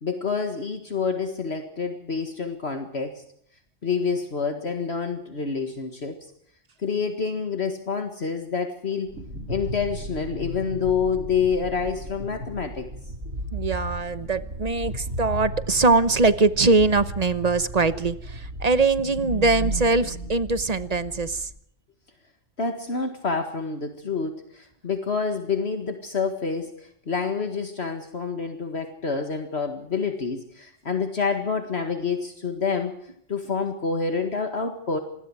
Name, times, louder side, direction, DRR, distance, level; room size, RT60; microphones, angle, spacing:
voice 1, 0.0-3.2 3.8-6.2 6.8-9.1 9.5-12.9 22.6-35.0, left 5 dB, 55° left, 6 dB, 2.1 m, -28 dB
sound 1, 9.1-21.5, right 1 dB, 80° right, 4.8 m, -35 dB
voice 2, 13.5-21.5, right 3 dB, 35° right, 14 dB, 1.0 m, -22 dB
26.5 x 21.0 x 4.8 m, 0.68 s
omnidirectional pair, 1.3 m